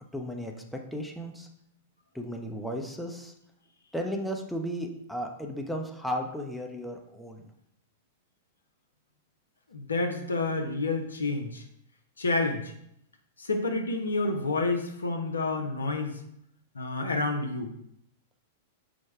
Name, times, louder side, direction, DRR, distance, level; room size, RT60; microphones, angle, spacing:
voice 1, 0.1-1.5 2.1-3.3 3.9-7.4, equal, 5° left, 2 dB, 0.5 m, -35 dB
voice 2, 9.7-11.6 12.2-12.7 13.4-16.2 16.7-17.7, left 3 dB, 85° left, 4 dB, 0.6 m, -29 dB
4.8 x 2.1 x 4.5 m, 0.74 s
hypercardioid pair, 100°, 0 cm